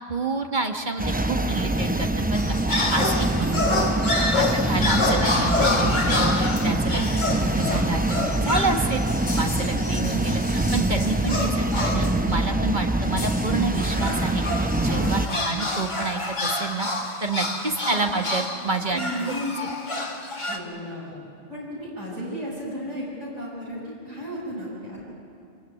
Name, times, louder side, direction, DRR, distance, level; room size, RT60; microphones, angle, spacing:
voice 1, 0.1-2.4 2.7-3.5 4.3-7.1 7.6-9.0 9.3-16.9 17.2-19.3, right 3 dB, 40° right, 4 dB, 1.4 m, -29 dB
sound 1, 1.0-15.3, right 1 dB, 10° right, 0.5 m, -24 dB
sound 2, 2.3-12.2 13.2-20.6, left 2 dB, 35° left, 2.1 m, -28 dB
voice 2, 9.8-10.2 11.2-11.4 15.2-15.6 17.8-18.2 18.9-19.6 20.5-21.2 21.5-25.2, equal, 70° right, -6 dB, 6.9 m, -34 dB
26.0 x 19.0 x 9.1 m, 2.4 s
omnidirectional pair, 1.3 m